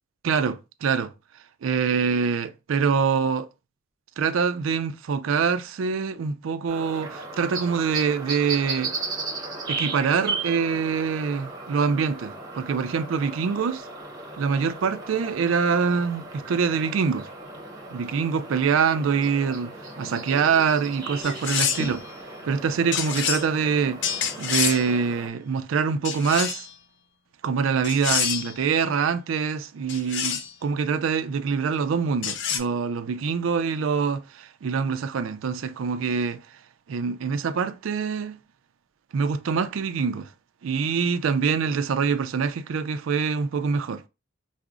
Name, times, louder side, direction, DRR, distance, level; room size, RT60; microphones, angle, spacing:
voice 1, 0.2-1.1 1.6-3.5 4.2-8.9 9.7-13.9 14.4-17.3 17.9-19.7 20.0-22.1 22.5-24.0 24.4-26.7 27.4-36.4 36.9-38.4 39.1-40.3 40.6-44.0, right 6 dB, 75° right, 0.4 m, -25 dB
sound 1, 6.7-25.3, right 3 dB, 20° right, 0.8 m, -36 dB
sound 2, 21.2-22.0 22.9-23.5 24.0-24.9 26.0-26.7 27.8-28.5 29.9-30.5 32.2-32.6, left 8 dB, 60° left, 0.5 m, -27 dB
4.7 x 2.0 x 2.4 m
head